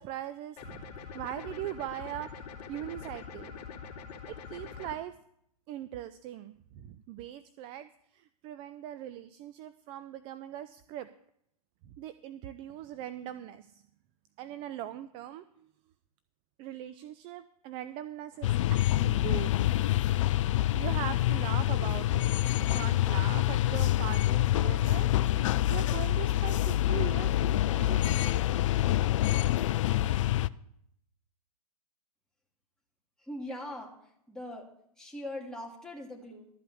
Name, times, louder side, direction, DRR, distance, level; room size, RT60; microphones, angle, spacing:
voice 1, 0.0-2.4 2.7-3.6 4.5-5.1 5.7-11.1 11.8-13.8 14.4-15.6 16.6-18.5 18.9-19.5 20.7-25.1 25.7-28.4, right 12 dB, 30° right, 13 dB, 0.5 m, -40 dB
sound 1, 0.6-5.0, left 6 dB, 35° left, 2.8 m, -44 dB
Boat Water vehicle, 18.3-23.5, right 5 dB, 80° right, 3.1 m, -60 dB
sound 2, 18.4-30.5, left 14 dB, 50° left, 0.4 m, -26 dB
voice 2, 33.2-34.7 35.0-36.5, left 1 dB, 5° left, -2 dB, 2.3 m, -41 dB
12.5 x 5.5 x 8.5 m, 0.73 s
hypercardioid pair, 125°, 20 cm